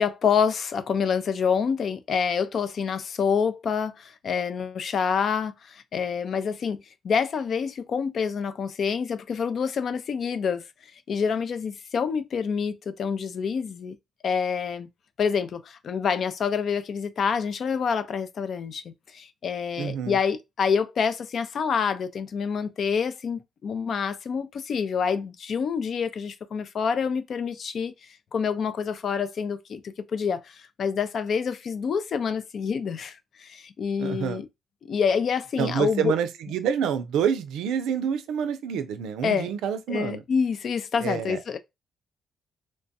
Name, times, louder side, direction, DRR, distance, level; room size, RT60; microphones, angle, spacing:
voice 1, 0.0-10.6 11.1-13.9 14.2-14.9 15.2-27.9 28.3-34.5 34.8-36.1 39.2-39.5 39.9-41.6, left 6 dB, 55° left, 0.4 m, -27 dB
voice 2, 19.8-20.2 34.0-34.4 35.6-40.2 41.0-41.4, right 8 dB, 90° right, 0.4 m, -27 dB
3.1 x 2.2 x 2.7 m
cardioid pair, 90°, 0 cm